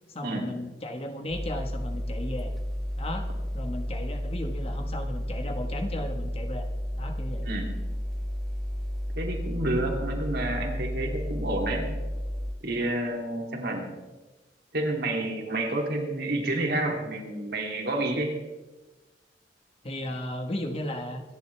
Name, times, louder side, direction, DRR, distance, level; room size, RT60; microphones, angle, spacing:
voice 1, 0.1-2.5 3.0-3.3 3.5-6.7 7.0-7.5 13.5-13.7 19.8-21.2, left 1 dB, 35° left, 5 dB, 1.4 m, -35 dB
sound 1, 1.3-12.5, equal, ahead, 1.4 m, -32 dB
voice 2, 7.4-7.7 9.2-11.9 12.6-13.9 14.7-18.3, right 1 dB, 60° right, 0 dB, 2.9 m, -29 dB
25.5 x 11.0 x 3.4 m, 1.1 s
head